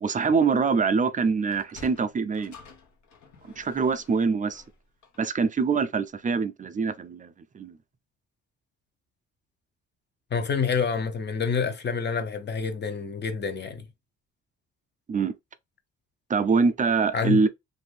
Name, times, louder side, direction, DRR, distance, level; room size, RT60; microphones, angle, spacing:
voice 1, 0.0-2.5 3.6-4.6 5.2-7.8 15.1-15.4 16.3-17.5, right 5 dB, 25° right, 0.4 m, -24 dB
Sliding door, 1.4-6.0, left 4 dB, 70° left, 1.0 m, -52 dB
voice 2, 10.3-13.9 17.1-17.4, left 6 dB, 35° left, 0.7 m, -27 dB
2.6 x 2.6 x 3.2 m
cardioid pair, 90°, 30 cm